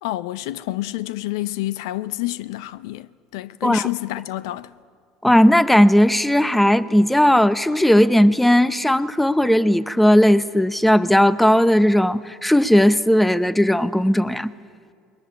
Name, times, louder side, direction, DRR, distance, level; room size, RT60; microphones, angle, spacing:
voice 1, 0.0-4.8, left 16 dB, 85° left, 0.5 m, -28 dB
voice 2, 5.2-14.5, equal, 5° left, 0.7 m, -16 dB
21.5 x 20.5 x 8.6 m
supercardioid pair, 95°, 2 cm